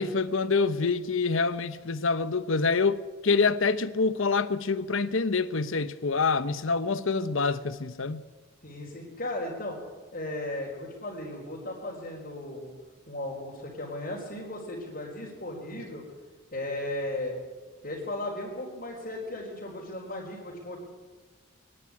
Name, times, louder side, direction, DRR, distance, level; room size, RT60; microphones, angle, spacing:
voice 1, 0.0-8.2, left 4 dB, 70° left, 0.9 m, -26 dB
voice 2, 8.6-9.8 10.1-12.7 13.1-16.0 16.5-17.4 17.8-20.8, left 1 dB, 45° left, 4.4 m, -36 dB
22.5 x 12.5 x 9.7 m
head